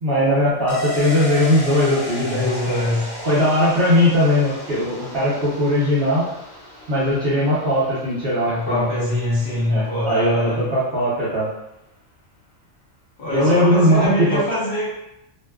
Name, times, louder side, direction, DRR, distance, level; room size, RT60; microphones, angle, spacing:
voice 1, 0.0-2.8 3.2-6.3 6.9-8.9 9.7-11.5 13.3-14.4, left 1 dB, 55° right, -10 dB, 0.9 m, -19 dB
sound 1, 0.7-10.1 10.4-10.5, equal, 70° left, 1.1 m, -34 dB
voice 2, 2.2-3.1 8.5-10.6 13.2-14.9, left 1 dB, 50° left, -9 dB, 0.9 m, -23 dB
2.5 x 2.2 x 2.3 m, 0.85 s
omnidirectional pair, 1.3 m